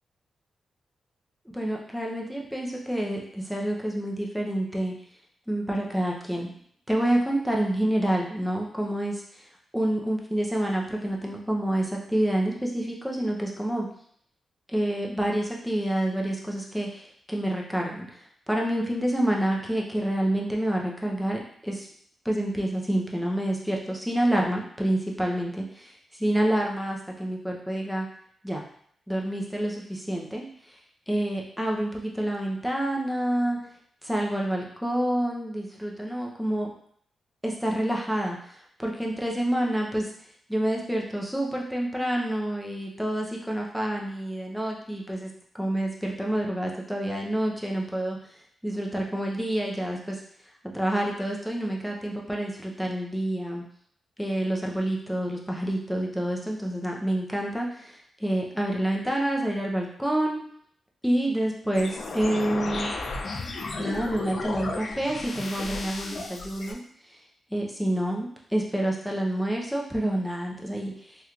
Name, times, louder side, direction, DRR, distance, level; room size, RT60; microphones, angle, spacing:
voice 1, 1.5-4.9 5.5-6.5 6.9-9.4 9.7-13.9 14.7-18.2 18.5-21.9 22.2-28.1 28.4-28.6 29.1-30.4 31.1-33.6 34.0-36.7 37.4-40.1 40.5-45.3 45.6-48.2 48.6-50.2 50.7-53.6 54.2-60.4 61.0-62.9 63.8-66.8 67.5-71.2, right 1 dB, ahead, -1 dB, 0.7 m, -28 dB
sound 1, 61.7-66.7, left 3 dB, 55° left, 0.4 m, -34 dB
3.2 x 3.0 x 2.4 m, 0.62 s
cardioid pair, 80°, 0 cm